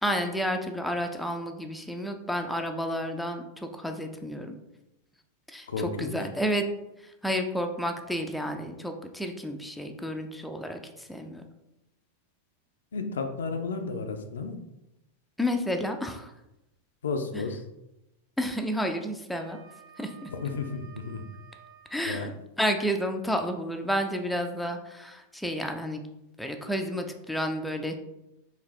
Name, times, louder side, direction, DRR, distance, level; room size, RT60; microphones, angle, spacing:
voice 1, 0.0-4.6 5.5-5.7 6.0-6.7 7.0-11.4 15.4-16.3 17.3-17.4 18.4-19.6 20.0-20.3 21.9-22.3 22.6-26.0 26.4-27.9, equal, ahead, 4 dB, 0.4 m, -31 dB
voice 2, 5.7-6.2 12.9-14.5 17.0-17.6 20.3-21.2 22.1-22.3, left 4 dB, 65° left, 6 dB, 0.4 m, -32 dB
Wind instrument woodwind instrument, 18.9-21.9, right 6 dB, 25° right, 1.3 m, -52 dB
4.0 x 2.7 x 3.1 m, 0.90 s
figure-of-eight pair, 90°, 0 cm